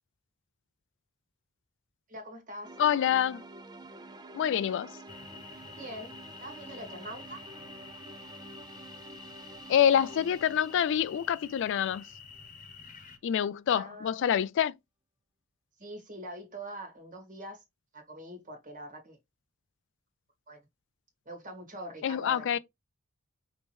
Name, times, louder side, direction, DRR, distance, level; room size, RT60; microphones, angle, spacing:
voice 1, 2.1-2.7 5.8-6.1 6.4-7.4 13.7-14.1 15.8-17.6 17.9-19.2 20.5-20.6 21.2-22.6, right 1 dB, 40° right, 1.6 m, -43 dB
sound 1, 2.6-12.6, right 2 dB, 20° right, 0.5 m, -49 dB
voice 2, 2.8-3.4 4.3-5.0 9.7-12.0 13.2-14.7 22.0-22.6, left 9 dB, 60° left, 0.3 m, -26 dB
sound 2, 5.1-13.2, left 6 dB, 40° left, 1.0 m, -49 dB
5.3 x 2.9 x 3.1 m
head